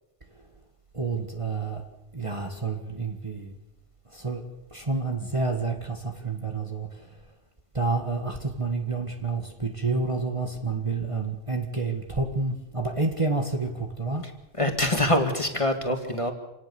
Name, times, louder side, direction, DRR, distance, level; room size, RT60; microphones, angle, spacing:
voice 1, 0.9-1.9 2.1-3.6 4.1-7.2 7.7-14.3, right 3 dB, 25° right, 1.8 m, -29 dB
voice 2, 14.6-16.3, left 1 dB, 25° left, 2.2 m, -24 dB
27.0 x 19.0 x 7.1 m
omnidirectional pair, 1.2 m